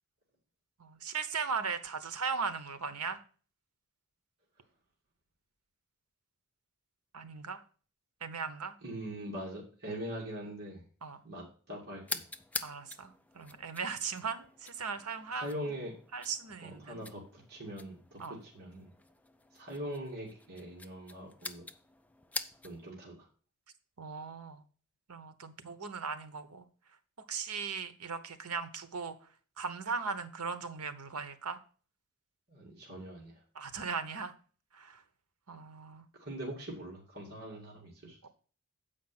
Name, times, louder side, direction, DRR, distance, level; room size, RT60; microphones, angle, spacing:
voice 1, 0.8-3.2 7.1-7.6 8.2-8.7 11.0-11.2 12.6-15.5 16.1-17.0 18.2-18.4 24.0-24.6 25.1-26.6 27.3-29.1 29.6-31.6 33.5-34.3 34.7-35.0 35.5-36.0 38.2-38.3, right 5 dB, 90° right, 1.0 m, -38 dB
voice 2, 8.8-10.8 11.2-12.3 15.3-15.9 16.6-18.9 19.5-21.7 22.6-23.3 32.5-33.4 36.1-38.3, right 1 dB, 45° right, 2.3 m, -42 dB
sound 1, 12.0-22.9, left 3 dB, 5° left, 0.4 m, -46 dB
8.0 x 5.1 x 5.9 m
head